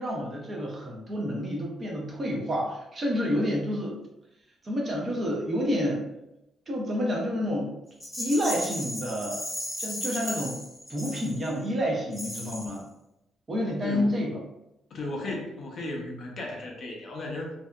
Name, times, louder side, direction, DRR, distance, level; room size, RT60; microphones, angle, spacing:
voice 1, 0.0-4.0 4.6-6.0 6.7-7.7 8.2-9.4 9.8-10.6 10.9-12.8 13.5-14.4, equal, 25° right, -2 dB, 0.5 m, -29 dB
Rattle, 8.0-11.6 12.1-12.8, left 1 dB, 5° right, 1.0 m, -35 dB
voice 2, 13.8-14.2 14.9-17.5, left 2 dB, 40° left, -1 dB, 0.5 m, -35 dB
2.6 x 2.2 x 2.2 m, 0.88 s
cardioid pair, 170°, 0 cm